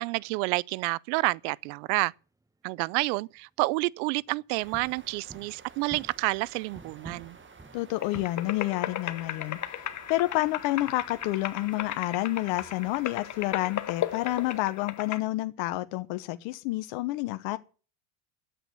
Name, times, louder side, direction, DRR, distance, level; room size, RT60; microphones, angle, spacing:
voice 1, 0.0-2.1 2.6-7.4, right 24 dB, 70° right, 0.6 m, -29 dB
sound 1, 4.0-4.2 4.7-6.4 6.7-8.3, right 2 dB, 5° right, 0.8 m, -48 dB
sound 2, 4.5-14.6, right 5 dB, 25° right, 1.7 m, -52 dB
voice 2, 7.7-9.6 10.1-17.6, left 18 dB, 65° left, 1.1 m, -29 dB
sound 3, 8.0-15.2, left 11 dB, 35° left, 1.3 m, -36 dB
10.0 x 8.1 x 9.3 m
supercardioid pair, 90°, 48 cm